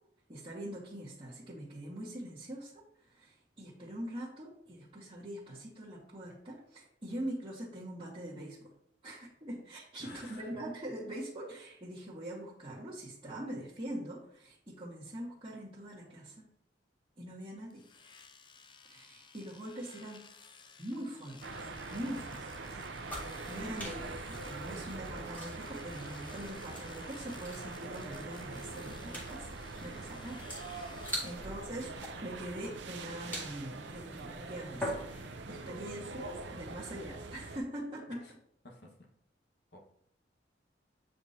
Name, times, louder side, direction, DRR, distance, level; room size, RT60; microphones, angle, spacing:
voice 1, 0.3-2.8 3.1-8.6 9.0-16.5 17.2-17.8 18.9-20.3 20.8-22.8 23.5-29.5 29.8-31.9 32.2-35.1 35.5-38.2, right 1 dB, 30° right, -9 dB, 1.6 m, -43 dB
voice 2, 10.0-10.6 31.3-31.6 38.1-38.3 38.6-39.1 39.7-39.8, left 2 dB, 65° left, 0 dB, 1.5 m, -52 dB
Domestic sounds home sounds, 17.7-31.3, left 5 dB, 25° left, 0.5 m, -56 dB
sound 1, 21.4-37.6, right 3 dB, 80° right, 0.7 m, -44 dB
sound 2, 23.0-35.5, equal, 10° left, 2.0 m, -45 dB
8.6 x 5.1 x 2.8 m, 0.68 s
head